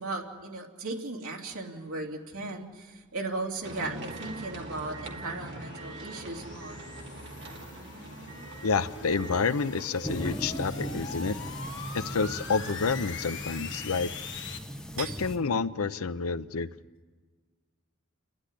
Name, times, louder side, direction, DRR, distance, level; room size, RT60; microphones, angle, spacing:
voice 1, 0.0-6.8 15.0-15.2, right 3 dB, 85° right, 3.1 m, -36 dB
sound 1, 3.4-14.6, left 4 dB, 55° left, 1.5 m, -43 dB
sound 2, 3.6-12.8, right 2 dB, 55° right, 2.4 m, -44 dB
voice 2, 8.6-11.3 11.9-14.1 15.0-16.7, left 4 dB, 85° left, 0.7 m, -29 dB
sound 3, 10.0-15.4, equal, 5° left, 1.3 m, -38 dB
29.5 x 12.5 x 10.0 m
head